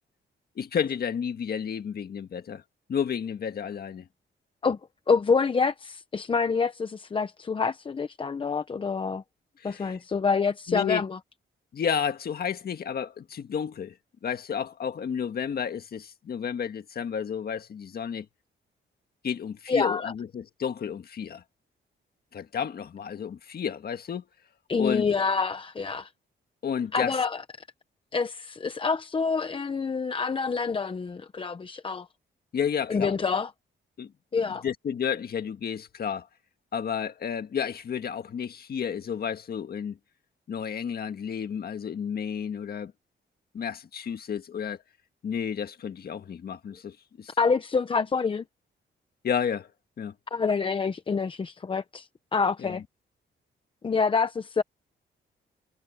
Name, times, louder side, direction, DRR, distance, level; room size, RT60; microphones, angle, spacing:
voice 1, 0.5-2.6 2.9-4.1 9.6-10.0 10.7-11.1 11.7-14.0 14.2-18.3 19.2-21.4 22.3-24.2 24.8-25.1 26.6-27.2 32.5-33.1 34.0-34.1 34.5-36.3 36.7-40.0 40.5-42.9 43.5-44.8 45.2-47.3 49.2-49.7 50.0-50.1 52.6-52.8, left 7 dB, 50° left, 1.7 m, -31 dB
voice 2, 5.1-9.2 9.6-11.2 19.7-20.1 24.7-26.1 26.9-27.4 28.1-32.1 32.9-33.5 34.3-34.6 47.4-48.4 50.3-52.8 53.8-54.6, left 5 dB, 25° left, 0.7 m, -27 dB
wide cardioid pair, 155°, 20 cm